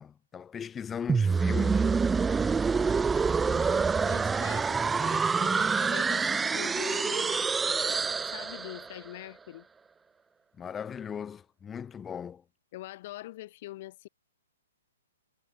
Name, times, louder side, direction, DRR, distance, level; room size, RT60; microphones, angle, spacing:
voice 1, 0.0-1.9 10.6-12.4, left 7 dB, 15° left, 0.8 m, -38 dB
sound 1, 1.1-9.0, right 5 dB, 10° right, 0.4 m, -26 dB
voice 2, 3.4-9.7 12.7-14.1, left 16 dB, 45° left, 1.8 m, -44 dB
hypercardioid pair, 135°, 0 cm